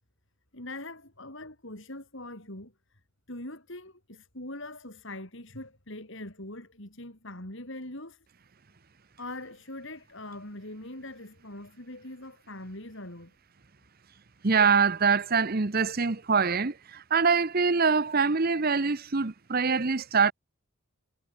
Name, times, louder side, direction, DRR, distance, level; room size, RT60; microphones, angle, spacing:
voice 1, 0.5-2.7 3.3-8.3 9.2-13.4, left 1 dB, 55° left, 5.0 m, -42 dB
voice 2, 14.4-20.3, right 5 dB, 40° right, 0.9 m, -24 dB
head